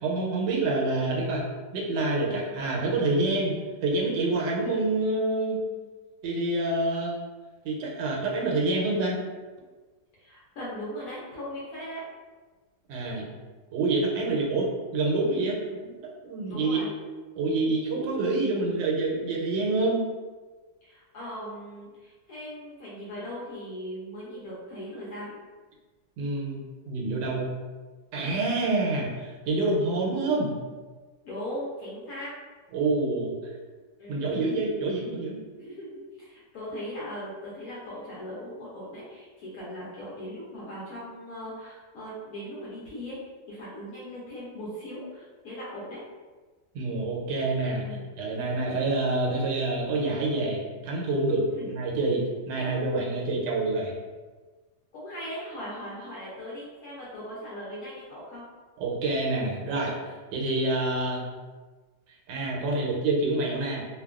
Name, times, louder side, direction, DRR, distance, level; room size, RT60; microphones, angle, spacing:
voice 1, 0.0-1.5 1.7-3.5 3.8-5.6 6.2-7.2 7.6-9.2 12.9-13.3 13.7-15.9 16.2-16.8 17.4-20.0 26.2-26.6 26.9-27.6 28.1-30.5 32.7-33.3 34.1-35.4 46.7-47.9 48.2-53.9 58.8-60.0 60.3-61.2 62.3-63.9, right 2 dB, 80° right, -2 dB, 1.3 m, -27 dB
voice 2, 10.2-12.0 16.5-16.9 20.8-25.3 31.2-32.3 34.0-34.3 35.5-43.2 43.5-46.0 47.8-48.1 51.6-51.8 52.6-52.7 54.9-58.4, equal, 65° left, -7 dB, 1.0 m, -39 dB
2.9 x 2.2 x 2.3 m, 1.3 s
omnidirectional pair, 2.0 m